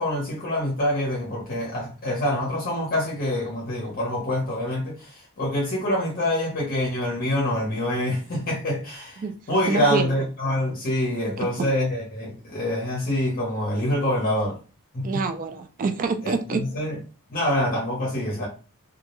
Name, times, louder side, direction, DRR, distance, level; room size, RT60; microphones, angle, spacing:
voice 1, 0.0-14.6 14.9-15.2 16.2-17.0 17.3-18.5, left 1 dB, 40° left, 0.8 m, -26 dB
voice 2, 9.7-10.1 11.4-11.7 15.0-16.6, right 4 dB, 35° right, 0.3 m, -26 dB
2.3 x 2.2 x 3.0 m
head